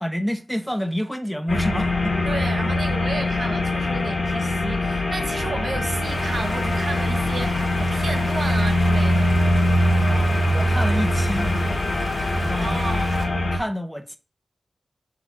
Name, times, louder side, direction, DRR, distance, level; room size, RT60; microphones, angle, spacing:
voice 1, 0.0-2.1 10.1-11.6 12.4-12.8 13.5-14.2, equal, 5° left, 0.4 m, -28 dB
sound 1, 1.5-13.6, left 1 dB, 60° left, 0.8 m, -22 dB
voice 2, 2.2-9.3 12.5-13.1, right 3 dB, 60° right, 0.7 m, -32 dB
sound 2, 6.0-13.3, right 1 dB, 35° right, 1.7 m, -37 dB
4.0 x 2.7 x 4.5 m
wide cardioid pair, 105°, 0 cm